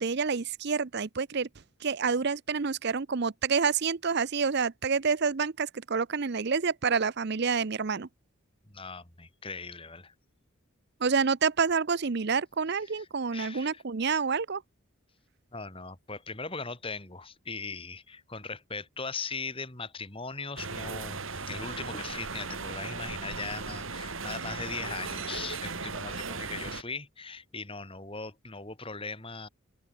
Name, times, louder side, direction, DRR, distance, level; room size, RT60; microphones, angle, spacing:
voice 1, 0.0-1.5 1.8-8.1 11.0-14.6, right 5 dB, 50° right, 0.6 m, -28 dB
voice 2, 8.7-10.1 12.7-13.8 15.5-29.5, left 4 dB, 25° left, 4.0 m, -39 dB
sound 1, 20.6-26.8, right 4 dB, 65° right, 3.2 m, -37 dB
head